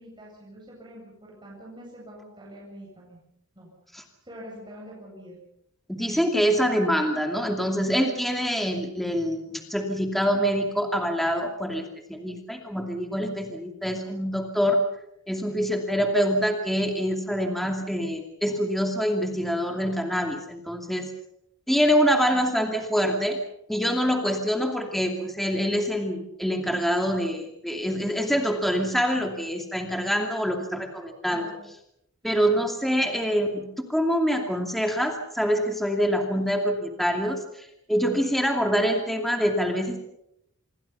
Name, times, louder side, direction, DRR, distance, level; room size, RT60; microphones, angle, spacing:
voice 1, 0.0-3.2 3.5-3.7 4.2-5.4 31.2-31.6 32.2-32.5, equal, 20° right, -4 dB, 7.9 m, -45 dB
voice 2, 5.9-14.8 15.3-21.1 21.7-23.4 23.7-31.4 32.2-40.0, equal, ahead, 3 dB, 2.6 m, -25 dB
27.0 x 22.5 x 5.7 m, 0.79 s
head